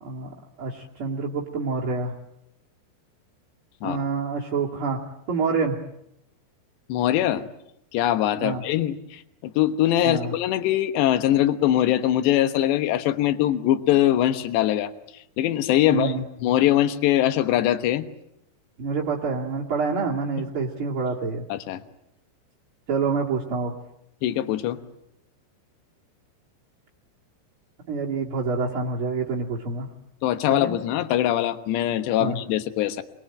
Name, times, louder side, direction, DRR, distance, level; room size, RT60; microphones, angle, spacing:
voice 1, 0.0-2.1 3.8-5.0 5.3-5.8 8.4-8.6 10.0-10.3 15.9-16.2 18.8-21.4 22.9-23.7 27.9-29.9 30.5-30.7 32.2-32.4, right 4 dB, 40° right, -3 dB, 2.0 m, -27 dB
voice 2, 6.9-7.4 7.9-16.1 16.4-18.0 21.5-21.8 24.2-24.8 30.2-33.0, left 12 dB, 70° left, 10 dB, 3.2 m, -22 dB
26.5 x 21.5 x 9.0 m, 0.82 s
omnidirectional pair, 5.5 m